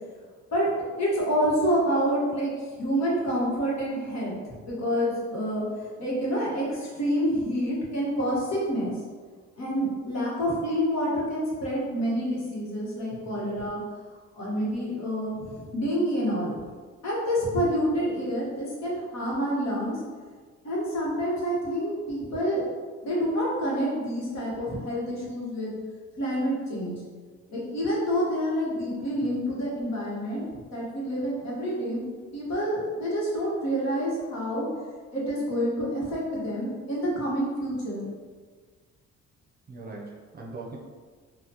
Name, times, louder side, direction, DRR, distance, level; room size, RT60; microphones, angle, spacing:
voice 1, 1.0-8.9 9.6-13.8 14.4-16.5 17.0-20.0 20.6-22.6 23.0-25.8 26.2-27.0 27.5-32.0 32.3-34.7 35.1-38.1, equal, 60° left, -5 dB, 1.3 m, -28 dB
voice 2, 39.7-40.8, right 3 dB, 30° right, -1 dB, 0.6 m, -41 dB
3.9 x 2.3 x 2.9 m, 1.5 s
cardioid pair, 90°, 30 cm